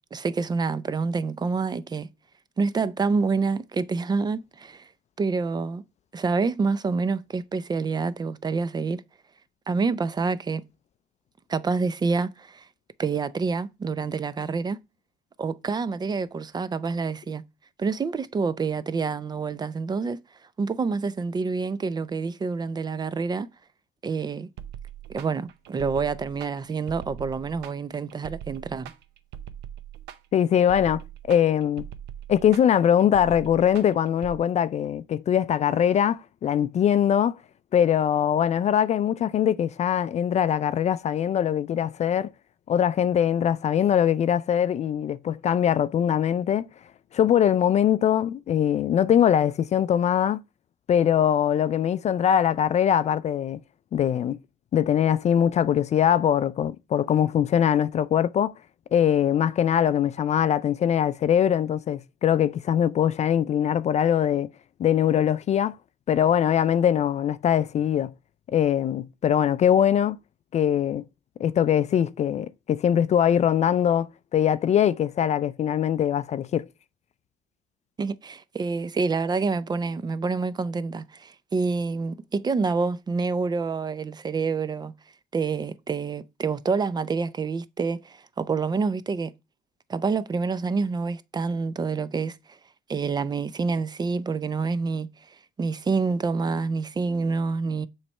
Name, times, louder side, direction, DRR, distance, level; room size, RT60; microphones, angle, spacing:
voice 1, 0.1-2.1 2.6-4.9 5.2-5.8 6.1-9.0 9.7-10.6 11.5-12.7 13.0-14.8 15.4-17.4 17.8-20.2 20.6-23.5 24.0-24.5 25.1-28.9 78.0-84.9 85.3-89.3 89.9-92.4 92.9-95.1 95.6-97.9, right 4 dB, 25° right, 0.4 m, -27 dB
sound 1, 24.6-34.4, right 10 dB, 85° right, 0.7 m, -41 dB
voice 2, 30.3-31.0 31.3-31.8 32.3-37.4 37.7-42.3 42.7-46.6 47.1-50.4 50.9-53.6 53.9-54.4 54.7-58.5 58.9-64.5 64.8-65.7 66.1-68.1 68.5-70.2 70.5-71.0 71.4-76.7, left 9 dB, 40° left, 0.4 m, -22 dB
7.2 x 3.3 x 5.3 m
cardioid pair, 110°, 17 cm